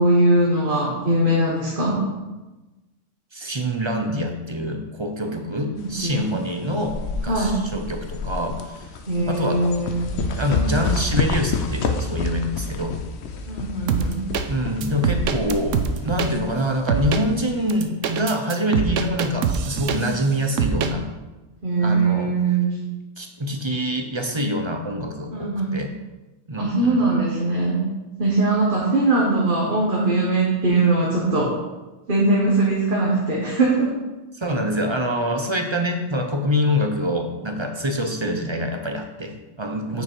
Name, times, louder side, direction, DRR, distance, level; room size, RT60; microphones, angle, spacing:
voice 1, 0.0-2.0 5.7-6.3 7.3-7.7 9.1-10.1 13.5-14.2 19.7-20.0 21.6-22.8 25.3-25.8 26.6-27.9 28.2-31.5 32.1-33.9 39.9-40.0, right 2 dB, 45° right, -4 dB, 1.5 m, -21 dB
voice 2, 3.3-8.9 9.3-9.7 10.4-13.0 14.5-21.1 21.8-22.3 23.2-25.9 26.5-27.0 34.3-40.0, equal, 30° right, 4 dB, 0.7 m, -25 dB
sound 1, 5.8-17.8, left 3 dB, 65° left, 0.9 m, -29 dB
sound 2, 13.9-14.4 14.8-16.3 16.9-17.2 17.7-20.3 20.6-20.9, right 7 dB, 90° right, 1.0 m, -23 dB
9.2 x 5.2 x 4.6 m, 1.1 s
omnidirectional pair, 1.3 m